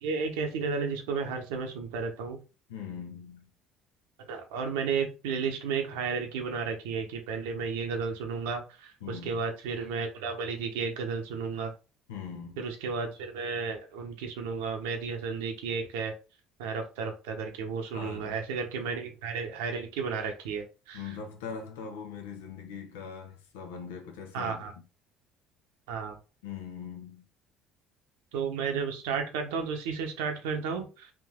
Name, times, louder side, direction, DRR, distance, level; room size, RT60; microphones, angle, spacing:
voice 1, 0.0-2.4 4.2-11.7 12.6-16.1 16.6-21.1 24.3-24.7 25.9-26.2 28.3-31.1, right 5 dB, 80° right, 0.8 m, -33 dB
voice 2, 2.7-3.5 9.0-9.4 12.1-12.6 17.9-18.3 18.8-18.9 20.9-24.6 26.4-27.3, left 6 dB, 85° left, 0.7 m, -41 dB
3.7 x 2.6 x 3.6 m
hypercardioid pair, 75°, 0 cm